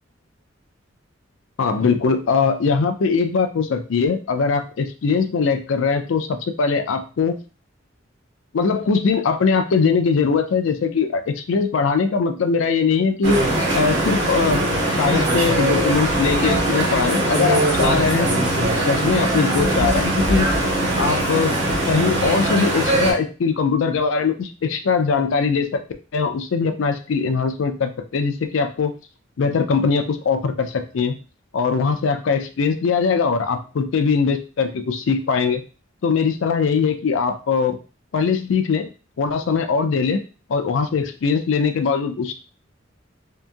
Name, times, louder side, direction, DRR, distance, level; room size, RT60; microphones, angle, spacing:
voice 1, 1.6-7.4 8.5-13.4 13.7-14.6 15.0-18.3 18.7-20.5 21.0-21.5 21.9-25.8 26.1-28.9 29.4-31.2 31.5-35.6 36.0-37.7 38.1-38.9 39.2-40.2 40.5-42.3, left 5 dB, 80° left, 8 dB, 0.4 m, -21 dB
sound 1, 13.2-23.1, right 1 dB, 60° right, 1.0 m, -20 dB
2.8 x 2.6 x 2.3 m, 0.34 s
head